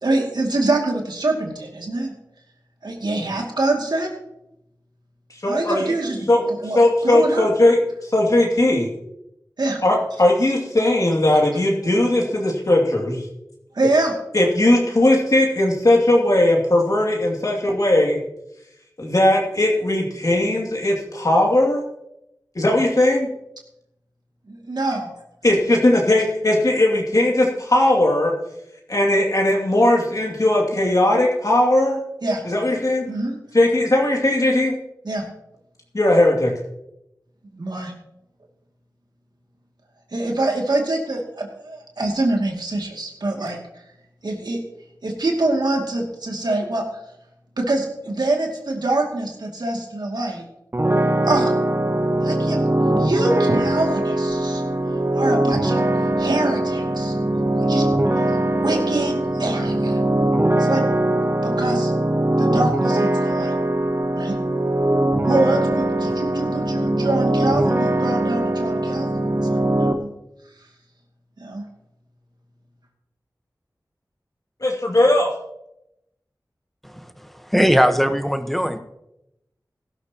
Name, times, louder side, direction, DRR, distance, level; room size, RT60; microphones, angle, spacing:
voice 1, 0.0-2.1 2.8-4.1 5.4-6.2 6.6-6.8 7.0-7.4 9.6-9.8 13.7-14.1 24.5-25.1 32.2-32.4 33.1-33.4 35.0-35.2 37.5-37.9 40.1-43.6 44.2-44.6 45.0-46.9 47.6-50.4 51.2-51.5 52.2-52.6 53.0-54.6 55.1-55.9 56.2-57.1 57.5-57.9 58.5-60.0 60.6-61.9 62.4-63.5 64.2-64.4 65.3-69.2 70.0-70.1 71.4-71.6, right 2 dB, 75° right, 1 dB, 2.5 m, -24 dB
voice 2, 5.4-5.9 6.3-6.4 6.7-8.9 9.8-13.2 14.3-18.2 19.0-21.8 22.5-23.3 25.4-28.3 28.9-32.0 32.4-33.1 33.5-34.7 35.9-36.5 74.6-75.3, left 1 dB, 55° left, -2 dB, 2.5 m, -18 dB
sound 1, 50.7-69.9, right 1 dB, 35° right, 1.2 m, -21 dB
voice 3, 77.5-78.8, equal, ahead, 8 dB, 1.1 m, -19 dB
17.5 x 11.5 x 3.0 m, 0.85 s
wide cardioid pair, 45°, 7 cm